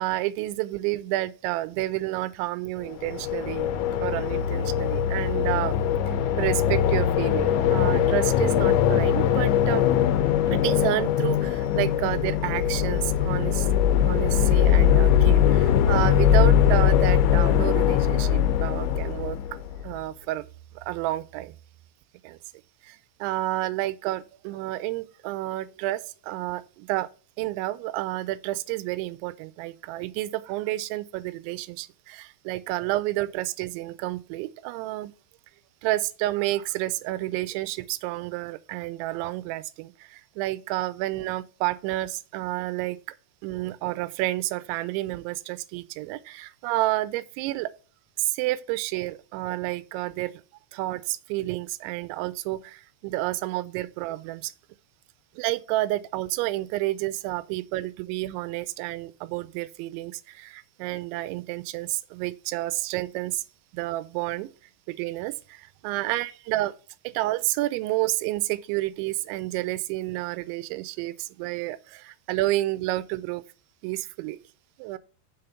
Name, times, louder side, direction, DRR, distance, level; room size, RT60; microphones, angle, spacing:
voice 1, 0.0-3.7 4.0-5.8 6.1-9.9 10.5-13.7 14.0-19.4 19.8-20.5 20.8-21.5 22.2-22.4 22.8-27.1 27.4-35.1 35.8-43.0 43.4-47.7 48.2-50.4 50.7-54.5 55.4-63.4 63.7-64.6 64.9-66.8 67.0-73.4 73.8-74.4 74.8-75.0, right 17 dB, 90° right, 2.9 m, -30 dB
sound 1, 2.9-19.9, left 9 dB, 85° left, 3.1 m, -21 dB
6.3 x 5.1 x 5.7 m
omnidirectional pair, 5.2 m